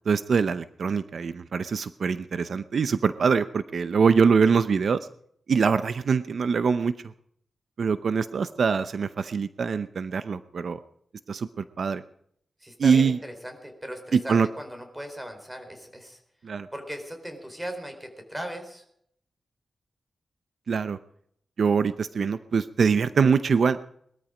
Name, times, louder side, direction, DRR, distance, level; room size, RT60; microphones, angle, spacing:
voice 1, 0.1-5.1 5.5-6.9 7.8-10.8 11.3-12.0 12.8-13.2 14.1-14.5 16.4-16.7 20.7-21.0 21.6-23.8, right 5 dB, 65° right, 12 dB, 0.7 m, -23 dB
voice 2, 12.6-16.2 16.7-18.8, equal, 10° right, 5 dB, 4.4 m, -38 dB
21.0 x 13.5 x 5.1 m, 0.68 s
wide cardioid pair, 135°, 0 cm